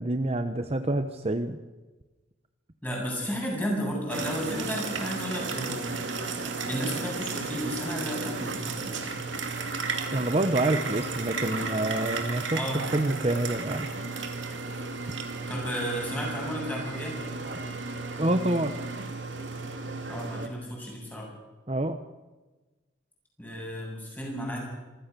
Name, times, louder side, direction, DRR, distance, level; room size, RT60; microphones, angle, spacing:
voice 1, 0.0-1.6 10.1-13.9 18.2-18.8 21.7-22.0, right 1 dB, 35° right, 8 dB, 0.9 m, -27 dB
voice 2, 2.8-5.9 6.7-9.1 12.5-13.0 15.5-17.2 20.1-21.3 23.4-24.6, equal, 10° left, -2 dB, 7.9 m, -33 dB
sound 1, 4.1-20.5, right 4 dB, 85° right, 2.6 m, -34 dB
26.5 x 15.0 x 6.8 m, 1.2 s
head